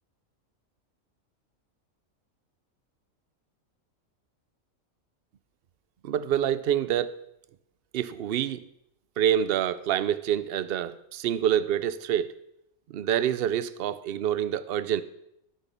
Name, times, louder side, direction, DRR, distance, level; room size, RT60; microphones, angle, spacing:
voice 1, 6.0-7.2 7.9-8.6 9.2-12.4 12.9-15.0, right 10 dB, 60° right, 0.6 m, -27 dB
13.0 x 6.3 x 6.7 m
omnidirectional pair, 1.4 m